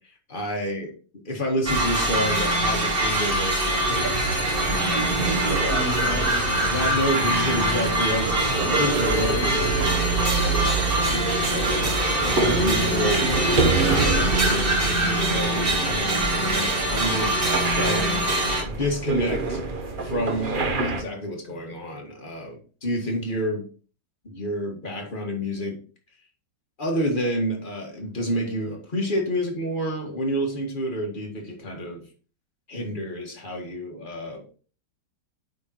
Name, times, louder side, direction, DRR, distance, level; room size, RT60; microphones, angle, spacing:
voice 1, 0.3-0.9 1.2-4.1 4.6-6.3 6.7-10.1 10.4-10.6 11.1-11.9 12.2-13.3 13.8-17.4 17.7-18.2 18.7-19.6 20.0-23.6 24.2-25.8 26.8-32.0 32.7-34.4, equal, 25° left, 0 dB, 1.7 m, -29 dB
sound 1, 1.7-18.6, right 1 dB, 30° right, 1.6 m, -24 dB
sound 2, 3.9-21.0, right 3 dB, 65° right, 0.5 m, -27 dB
8.6 x 5.2 x 3.0 m, 0.38 s
omnidirectional pair, 2.3 m